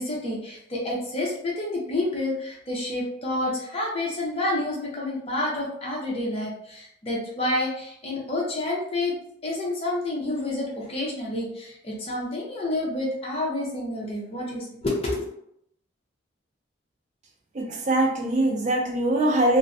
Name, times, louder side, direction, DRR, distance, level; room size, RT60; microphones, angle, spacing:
voice 1, 0.0-9.1 9.4-15.3, left 1 dB, 30° left, -3 dB, 0.6 m, -29 dB
voice 2, 17.5-19.6, right 1 dB, 40° right, 1 dB, 0.3 m, -22 dB
2.4 x 2.0 x 2.5 m, 0.73 s
head